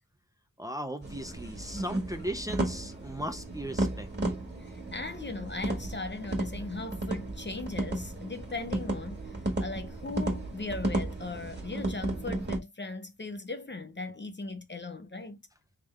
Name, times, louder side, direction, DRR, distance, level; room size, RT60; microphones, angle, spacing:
voice 1, 0.6-4.4, equal, 10° right, 0.6 m, -37 dB
sound 1, 1.0-12.6, right 2 dB, 30° right, 1.5 m, -34 dB
voice 2, 4.6-15.4, left 3 dB, 35° left, 0.7 m, -38 dB
3.7 x 3.3 x 3.2 m
wide cardioid pair, 65°, 34 cm